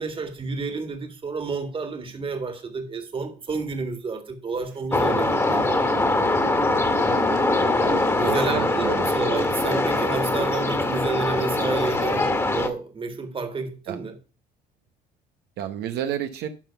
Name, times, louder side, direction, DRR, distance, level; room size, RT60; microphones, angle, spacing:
voice 1, 0.0-5.8 8.1-14.2, right 4 dB, 30° right, 1.9 m, -30 dB
sound 1, 4.9-12.7, left 2 dB, 15° left, 1.7 m, -22 dB
voice 2, 8.2-9.1 13.9-14.0 15.6-16.5, right 10 dB, 75° right, 0.9 m, -30 dB
12.0 x 4.0 x 5.6 m
cardioid pair, 110°, 17 cm